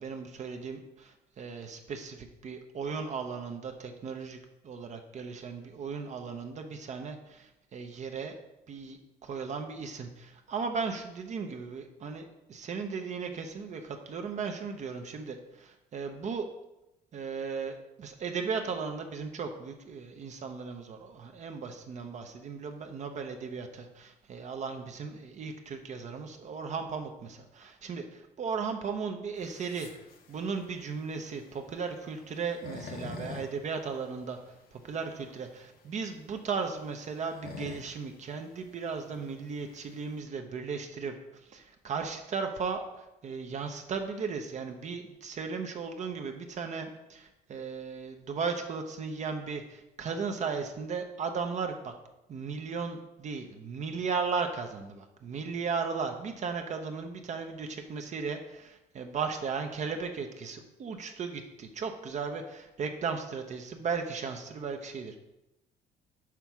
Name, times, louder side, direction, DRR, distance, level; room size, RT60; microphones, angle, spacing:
voice 1, 0.0-8.4 8.7-16.5 17.1-29.9 30.3-34.4 34.7-41.1 41.5-51.9 52.3-65.2, right 5 dB, 45° right, 5 dB, 0.7 m, -36 dB
sound 1, 29.3-40.2, left 4 dB, 60° left, 0.9 m, -47 dB
6.0 x 3.4 x 5.9 m, 0.92 s
cardioid pair, 110°, 17 cm